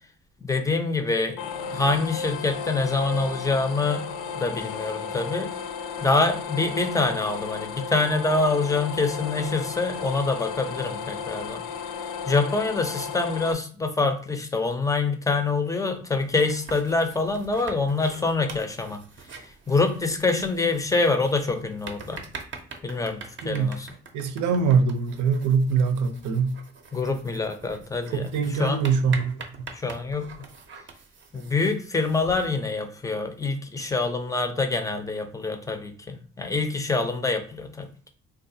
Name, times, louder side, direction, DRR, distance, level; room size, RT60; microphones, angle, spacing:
voice 1, 0.4-1.4 1.7-4.0 4.3-5.5 6.0-11.6 12.3-19.0 19.3-22.2 22.8-23.9 26.9-28.8 29.7-30.3 31.3-38.1, left 3 dB, 10° left, 0.5 m, -25 dB
sound 1, 1.4-13.5, left 6 dB, 80° left, 0.5 m, -34 dB
sound 2, 16.2-32.5, right 4 dB, 40° right, 0.6 m, -44 dB
voice 2, 24.1-26.5 28.1-29.4, right 5 dB, 80° right, 0.7 m, -23 dB
3.6 x 2.4 x 2.7 m
cardioid pair, 90°, 30 cm